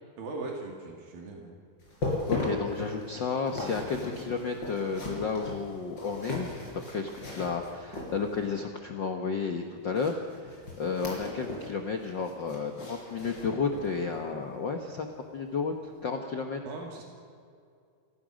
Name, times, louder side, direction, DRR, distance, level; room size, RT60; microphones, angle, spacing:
voice 1, 0.2-1.5 16.6-17.0, right 3 dB, 85° right, 1 dB, 4.2 m, -39 dB
sound 1, 1.8-8.5 9.9-11.8 12.0-14.0 14.4-14.6 15.1-15.2, left 2 dB, 30° left, 5.4 m, -38 dB
voice 2, 2.3-15.1 15.3-15.7 16.0-16.6, left 5 dB, 90° left, 4 dB, 1.0 m, -32 dB
28.5 x 15.5 x 6.4 m, 2.3 s
omnidirectional pair, 4.0 m